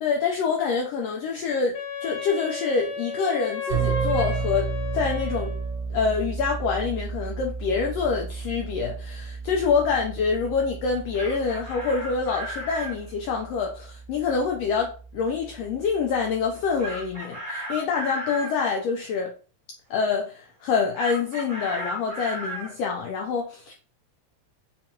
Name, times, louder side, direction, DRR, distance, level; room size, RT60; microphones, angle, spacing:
voice 1, 0.0-4.7 4.9-5.6 5.9-19.3 19.9-23.7, left 5 dB, 85° left, 1.4 m, -26 dB
Wind instrument woodwind instrument, 1.7-5.8, left 2 dB, 70° left, 1.8 m, -33 dB
sound 1, 3.7-17.1, right 5 dB, 55° right, 1.2 m, -34 dB
Chicken rooster, 10.9-13.0 16.8-18.5 20.9-22.7, right 1 dB, 80° right, 0.5 m, -34 dB
4.7 x 2.3 x 2.8 m
omnidirectional pair, 3.4 m